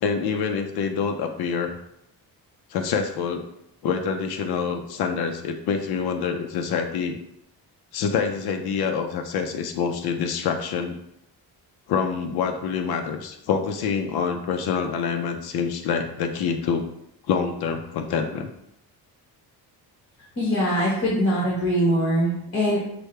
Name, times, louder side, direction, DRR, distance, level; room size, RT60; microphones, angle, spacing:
voice 1, 0.0-1.8 2.7-3.5 3.8-7.2 7.9-11.0 11.9-16.8 17.3-18.5, left 6 dB, 75° left, 4 dB, 0.6 m, -26 dB
voice 2, 20.4-22.8, equal, 35° left, -5 dB, 1.4 m, -22 dB
6.3 x 2.2 x 3.2 m, 0.77 s
cardioid pair, 125°, 38 cm